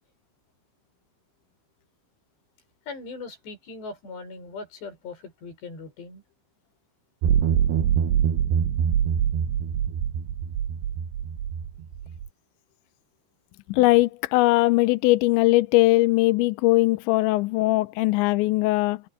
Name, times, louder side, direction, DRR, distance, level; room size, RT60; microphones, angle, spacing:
voice 1, 2.9-6.2, left 4 dB, 60° left, 9.1 m, -39 dB
sound 1, 7.2-12.3, right 8 dB, 70° right, 3.1 m, -24 dB
voice 2, 13.7-19.0, left 19 dB, 80° left, 2.8 m, -20 dB
omnidirectional pair, 5.6 m